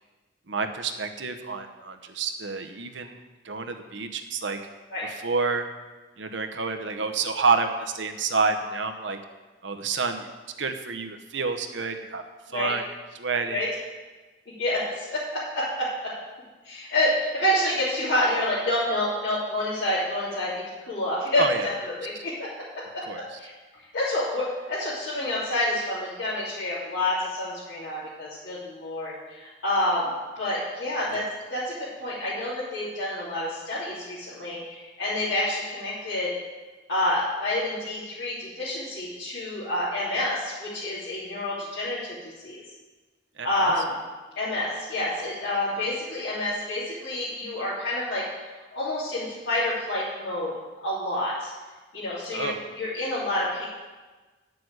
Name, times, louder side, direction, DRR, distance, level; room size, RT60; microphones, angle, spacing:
voice 1, 0.5-3.2 3.4-4.6 5.0-5.7 6.2-9.2 9.6-10.3 10.6-12.2 12.5-12.8 13.1-13.7 21.4-21.7 23.1-23.2 31.1-31.3 43.4-43.7 52.3-52.6, right 4 dB, 85° right, 6 dB, 1.0 m, -28 dB
voice 2, 14.6-16.1 16.6-22.5 22.9-23.0 23.4-23.5 23.9-30.1 30.3-31.2 31.5-36.3 36.9-42.6 43.4-43.9 44.4-48.3 48.7-50.5 50.8-51.5 51.9-52.5 52.7-53.6, left 1 dB, 80° left, -11 dB, 3.3 m, -28 dB
9.6 x 6.8 x 7.9 m, 1.3 s
head